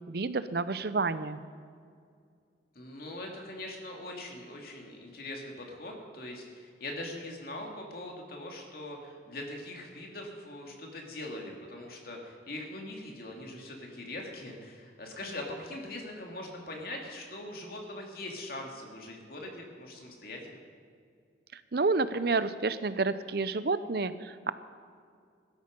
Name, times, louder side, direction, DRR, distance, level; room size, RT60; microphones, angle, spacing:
voice 1, 0.1-1.4 21.7-24.5, right 3 dB, 55° right, 13 dB, 0.7 m, -29 dB
voice 2, 2.7-20.6, left 1 dB, 50° left, 1 dB, 2.6 m, -42 dB
16.0 x 13.0 x 5.3 m, 2.2 s
head